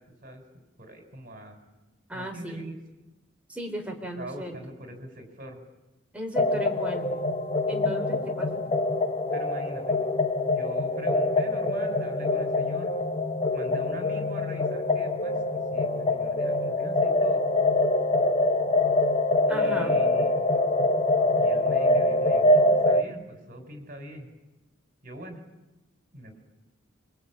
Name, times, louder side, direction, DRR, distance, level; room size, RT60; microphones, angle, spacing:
voice 1, 0.8-1.6 2.1-2.7 4.2-5.6 9.3-10.0 10.4-12.9 13.5-15.4 15.7-17.4 19.5-20.4 21.4-24.3 25.0-25.4 26.1-26.4, right 1 dB, 45° right, 5 dB, 5.6 m, -42 dB
voice 2, 2.1-2.6 3.5-4.6 6.1-7.1 7.7-8.7 19.5-19.9, right 1 dB, 5° right, 1 dB, 3.8 m, -36 dB
sound 1, 6.4-23.0, left 2 dB, 30° left, 1.0 m, -24 dB
26.5 x 23.0 x 8.9 m, 1.0 s
head